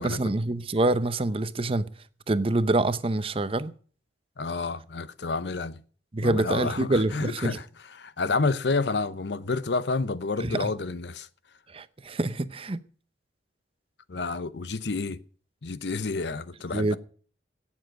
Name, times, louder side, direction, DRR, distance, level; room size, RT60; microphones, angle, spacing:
voice 1, 0.0-1.9 2.3-3.7 6.1-7.6 10.4-10.7 11.7-12.8 16.7-17.0, right 2 dB, 30° right, 0.7 m, -26 dB
voice 2, 4.4-5.8 6.2-7.6 8.0-11.3 14.1-15.2 15.6-17.0, left 3 dB, 70° left, 0.7 m, -29 dB
17.0 x 7.3 x 6.4 m
head